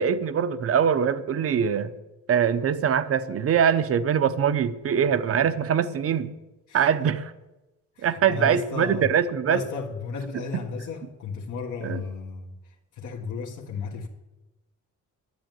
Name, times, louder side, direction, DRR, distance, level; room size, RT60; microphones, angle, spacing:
voice 1, 0.0-1.9 2.3-6.3 6.7-7.3 8.0-9.6 10.5-10.6 11.8-12.0, right 8 dB, 45° right, 0.8 m, -23 dB
voice 2, 8.0-9.1 9.5-12.5 12.9-14.1, left 5 dB, 70° left, 1.7 m, -34 dB
10.5 x 10.5 x 9.2 m
wide cardioid pair, 180°, 31 cm